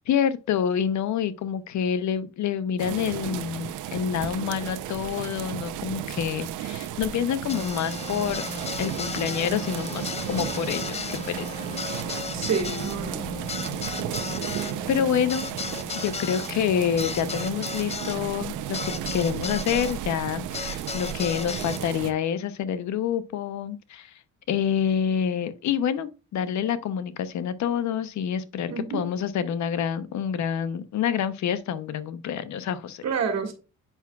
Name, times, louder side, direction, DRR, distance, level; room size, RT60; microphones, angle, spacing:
voice 1, 0.1-8.5 8.8-11.5 14.4-15.5 16.0-24.1 24.5-33.0, left 8 dB, 70° left, 0.8 m, -27 dB
sound 1, 2.8-22.1, right 11 dB, 85° right, 0.7 m, -34 dB
sound 2, 7.5-20.0 20.5-21.8, left 5 dB, 20° left, 0.4 m, -35 dB
voice 2, 12.3-13.3 28.7-29.1 33.0-33.5, right 5 dB, 60° right, 1.9 m, -28 dB
8.2 x 5.8 x 2.3 m
cardioid pair, 90°, 30 cm